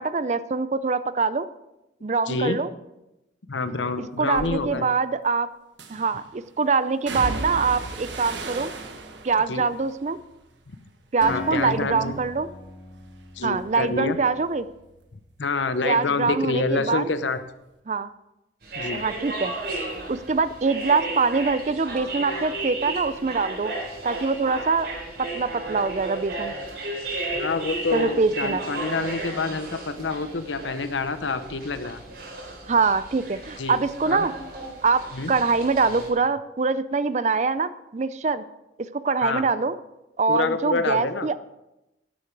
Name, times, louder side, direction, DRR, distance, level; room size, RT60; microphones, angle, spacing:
voice 1, 0.0-1.5 2.0-2.7 4.2-5.5 5.9-8.7 9.2-10.2 11.1-12.5 13.4-14.7 15.8-17.0 17.9-18.1 18.9-19.5 20.1-23.7 24.0-24.9 25.2-26.5 27.9-28.6 32.7-34.3 34.8-35.0 35.3-38.4 38.9-39.8 40.2-41.4, right 4 dB, 40° right, 15 dB, 0.4 m, -24 dB
voice 2, 2.3-2.6 3.5-4.9 9.5-9.6 11.3-12.2 13.4-14.2 15.4-17.4 18.8-19.0 27.3-32.0 33.6-33.8 34.1-34.3 35.1-35.3 39.2-39.4 40.3-41.3, left 3 dB, 90° left, 11 dB, 0.9 m, -27 dB
sound 1, 4.3-4.6 5.8-6.3 7.1-11.3 11.6-12.2 12.6-15.9 16.2-17.3 17.6-17.7, right 2 dB, 80° right, 1.4 m, -38 dB
Acoustic guitar, 11.2-15.1, left 2 dB, 45° left, 2.2 m, -38 dB
sound 2, 18.6-36.1, right 2 dB, 60° right, 4.1 m, -34 dB
12.0 x 10.5 x 4.6 m, 0.93 s
head